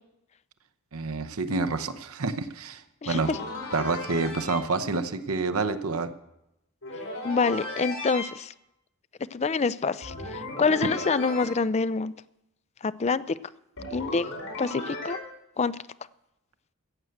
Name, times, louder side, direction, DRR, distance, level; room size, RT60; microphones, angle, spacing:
voice 1, 0.9-3.3 3.7-6.1, right 3 dB, 85° right, 9 dB, 0.8 m, -28 dB
voice 2, 3.0-3.4 7.2-8.5 9.3-12.1 12.8-13.4 13.9-14.3 14.6-15.2 15.6-15.8, left 4 dB, 30° left, 16 dB, 0.4 m, -26 dB
sound 1, 3.1-4.6 6.8-8.2 10.0-11.4 13.8-15.2, left 2 dB, 75° left, 5.5 m, -35 dB
15.0 x 7.8 x 7.8 m, 0.88 s
head